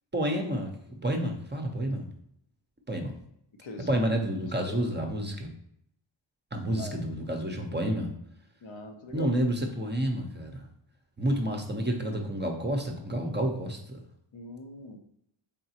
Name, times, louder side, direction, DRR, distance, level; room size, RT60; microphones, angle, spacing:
voice 1, 0.1-2.0 2.9-3.1 3.9-5.5 6.5-8.1 9.1-10.6 11.2-13.8, right 1 dB, 20° right, 3 dB, 0.6 m, -29 dB
voice 2, 3.6-4.1 4.6-4.8 6.8-7.0 8.6-9.4 14.3-15.0, left 3 dB, 65° left, 3 dB, 0.8 m, -41 dB
3.9 x 3.6 x 2.8 m, 0.73 s
wide cardioid pair, 70°, 50 cm